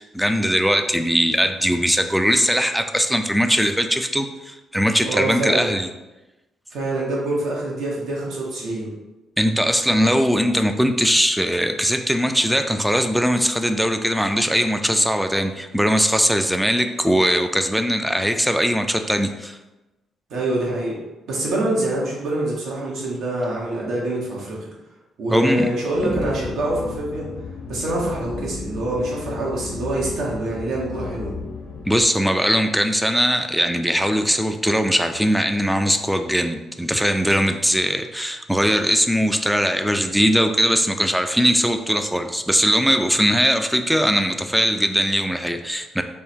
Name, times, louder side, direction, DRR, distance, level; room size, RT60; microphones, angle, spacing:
voice 1, 0.0-5.9 9.4-19.6 25.3-25.7 26.0-26.2 31.9-46.0, equal, ahead, 7 dB, 0.3 m, -20 dB
voice 2, 5.0-5.7 6.7-8.9 20.3-21.0 21.3-24.6 25.2-27.3 27.7-31.3, right 1 dB, 75° right, -4 dB, 1.2 m, -25 dB
sound 1, 25.9-32.0, left 4 dB, 65° left, 0.7 m, -34 dB
3.5 x 2.2 x 4.3 m, 1.1 s
cardioid pair, 90°, 0 cm